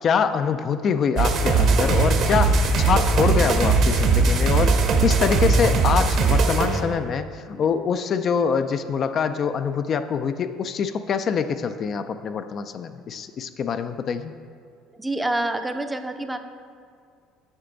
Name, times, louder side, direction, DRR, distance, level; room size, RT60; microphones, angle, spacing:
voice 1, 0.0-4.8 5.0-14.3, left 6 dB, 45° left, 9 dB, 0.3 m, -24 dB
sound 1, 1.2-6.8, right 4 dB, 55° right, 0.9 m, -19 dB
voice 2, 15.0-16.4, right 1 dB, 10° right, 8 dB, 0.5 m, -27 dB
8.0 x 5.8 x 3.9 m, 2.2 s
supercardioid pair, 85°, 0 cm